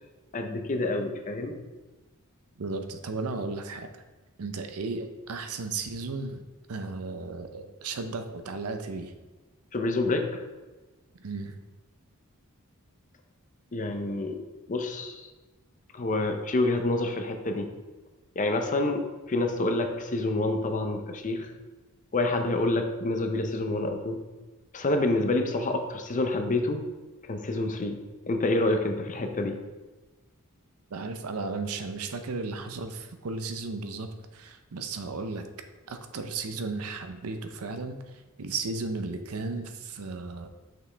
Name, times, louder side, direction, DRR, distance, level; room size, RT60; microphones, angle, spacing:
voice 1, 0.3-1.6 9.7-10.4 13.7-15.3 15.9-17.7 18.4-21.5 22.1-24.2 24.7-26.8 27.3-28.0 28.3-29.6, left 2 dB, 35° left, 5 dB, 0.6 m, -28 dB
voice 2, 2.6-3.9 4.4-6.4 6.7-9.1 11.2-11.6 30.9-35.5 35.9-40.5, right 3 dB, 75° right, 7 dB, 0.6 m, -35 dB
6.0 x 5.0 x 3.3 m, 1.2 s
head